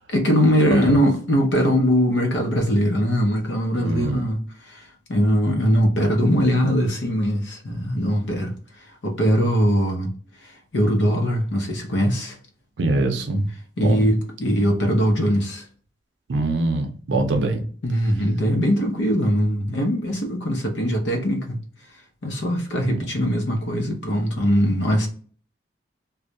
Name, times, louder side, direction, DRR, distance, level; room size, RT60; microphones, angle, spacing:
voice 1, 0.1-4.8 5.1-8.5 9.0-10.1 10.7-12.4 13.8-15.6 17.8-21.6 22.2-25.1, equal, 75° left, 0.6 m, -21 dB
voice 2, 3.7-4.2 12.8-13.4 13.8-14.0 16.3-17.7 22.9-23.0, right 2 dB, 75° right, 0.5 m, -23 dB
2.2 x 2.0 x 2.7 m
head